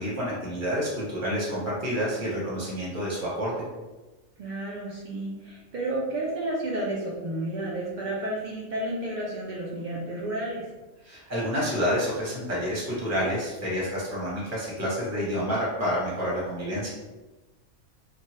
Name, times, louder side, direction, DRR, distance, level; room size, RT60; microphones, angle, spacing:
voice 1, 0.0-3.5 11.0-16.9, equal, 15° right, -7 dB, 0.9 m, -29 dB
voice 2, 4.4-10.7, right 1 dB, 75° right, -5 dB, 0.4 m, -31 dB
2.9 x 2.2 x 3.0 m, 1.2 s
omnidirectional pair, 1.4 m